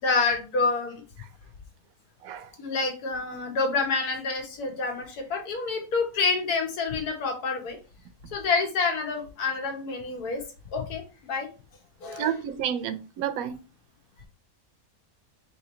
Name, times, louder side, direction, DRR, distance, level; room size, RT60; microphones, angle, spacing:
voice 1, 0.0-1.0 2.6-7.8 8.3-10.4 10.7-11.5 12.0-12.4, left 4 dB, 75° left, 1.6 m, -28 dB
voice 2, 12.2-13.6, right 9 dB, 75° right, 1.0 m, -30 dB
3.8 x 3.0 x 4.2 m
omnidirectional pair, 1.6 m